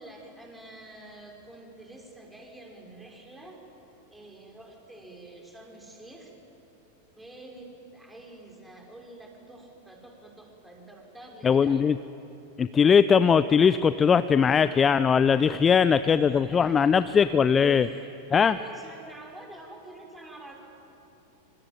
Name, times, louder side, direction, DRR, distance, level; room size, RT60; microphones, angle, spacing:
voice 1, 0.0-3.7 4.1-6.3 7.2-11.8 16.0-17.1 17.6-20.6, right 2 dB, 5° right, 0 dB, 5.5 m, -47 dB
voice 2, 11.4-12.0 12.6-17.9 18.3-18.6, left 6 dB, 20° left, 14 dB, 0.6 m, -20 dB
25.5 x 25.0 x 8.9 m, 2.9 s
figure-of-eight pair, 90°, 0 cm